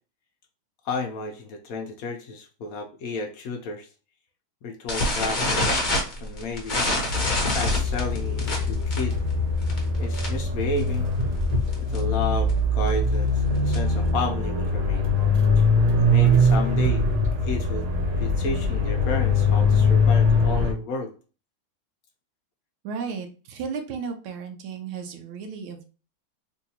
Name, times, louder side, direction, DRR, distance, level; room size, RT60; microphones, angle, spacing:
voice 1, 0.8-3.9 4.6-5.9 6.2-6.8 7.5-9.2 10.0-11.1 11.8-15.1 15.6-15.7 16.0-17.0 17.4-17.9 18.2-21.1, left 3 dB, 70° left, 3 dB, 0.8 m, -32 dB
sound 1, 4.9-10.5 10.8-11.1 11.3-11.4 11.7-12.0 12.5-14.0, left 1 dB, 35° left, 0.8 m, -26 dB
sound 2, 7.1-20.7, left 2 dB, 60° right, 1.3 m, -22 dB
voice 2, 22.8-25.8, right 6 dB, 85° right, 4 dB, 1.5 m, -34 dB
3.8 x 2.6 x 2.8 m, 0.36 s
omnidirectional pair, 2.2 m